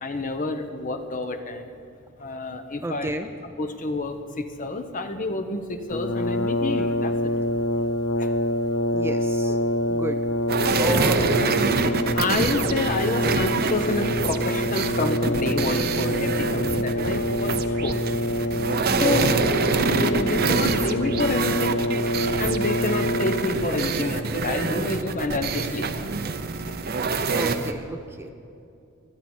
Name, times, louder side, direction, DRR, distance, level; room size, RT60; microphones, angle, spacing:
voice 1, 0.0-1.7 2.2-3.1 3.6-7.3 8.2-8.3 9.5-9.6 10.7-11.0 11.8-18.0 19.0-19.3 19.8-21.8 22.4-25.9, left 2 dB, 40° left, 7 dB, 1.0 m, -28 dB
voice 2, 2.8-3.3 8.9-9.6 9.9-10.2 10.8-11.5 18.9-19.2 27.3-28.3, right 1 dB, 10° right, 7 dB, 0.5 m, -31 dB
Brass instrument, 5.9-23.7, left 1 dB, 85° left, 0.7 m, -26 dB
sound 1, 10.5-27.7, right 4 dB, 50° right, 0.7 m, -26 dB
25.5 x 9.7 x 4.5 m, 2.6 s
head